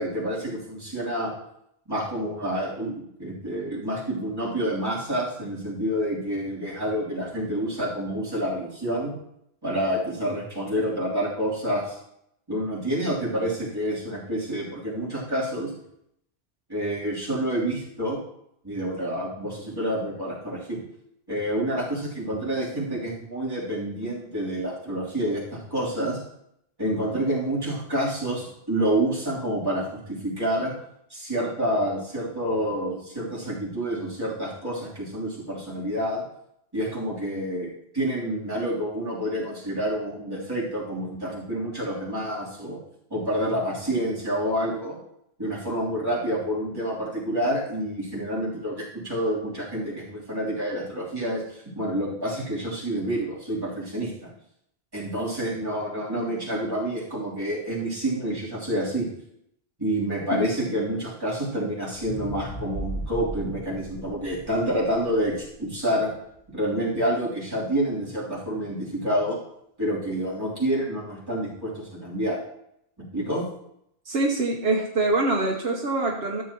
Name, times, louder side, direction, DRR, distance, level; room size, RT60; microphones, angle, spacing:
voice 1, 0.0-1.3 1.9-9.1 9.6-12.0 12.5-15.7 16.7-18.2 18.6-20.8 21.3-26.2 26.8-30.7 31.1-36.2 36.7-37.7 37.9-42.8 43.1-45.0 45.4-54.3 54.9-59.1 59.8-66.1 66.5-69.4 69.8-72.4 73.0-73.4, right 1 dB, 20° right, -8 dB, 3.3 m, -28 dB
sound 1, 61.9-66.2 66.7-66.8, right 1 dB, 40° left, 3.2 m, -37 dB
voice 2, 74.1-76.4, right 2 dB, 75° right, 0 dB, 1.2 m, -24 dB
13.5 x 7.6 x 3.0 m, 0.76 s
omnidirectional pair, 1.1 m